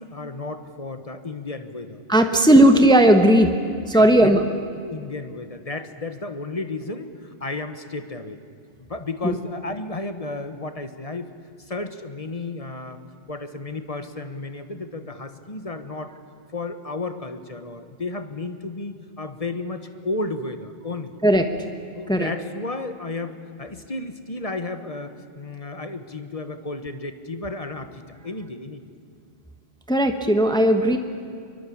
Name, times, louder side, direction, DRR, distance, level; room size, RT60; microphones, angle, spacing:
voice 1, 0.0-2.0 2.3-2.9 3.9-4.5 4.8-8.4 8.9-11.3 11.6-13.0 13.3-16.1 16.5-21.2 21.9-28.9, left 2 dB, 35° left, 9 dB, 1.4 m, -33 dB
voice 2, 2.1-3.5 3.9-4.4 9.2-9.3 21.2-21.5 22.1-22.3 29.9-31.0, right 1 dB, 5° left, 6 dB, 1.3 m, -16 dB
25.0 x 23.0 x 8.7 m, 2.3 s
omnidirectional pair, 1.0 m